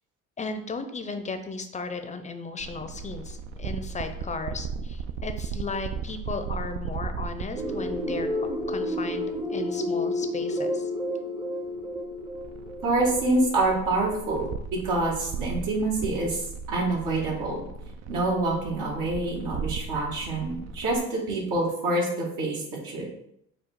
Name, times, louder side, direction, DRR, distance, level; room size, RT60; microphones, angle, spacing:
voice 1, 0.4-10.9, left 3 dB, 25° left, 8 dB, 0.6 m, -35 dB
sound 1, 2.6-9.4 11.7-21.0, right 5 dB, 55° right, 0.4 m, -37 dB
sound 2, 7.5-14.1, left 1 dB, 15° right, 0.7 m, -31 dB
voice 2, 12.8-17.6 18.1-23.0, right 2 dB, 75° right, -3 dB, 1.5 m, -26 dB
4.8 x 2.3 x 4.5 m, 0.74 s
cardioid pair, 85°, 31 cm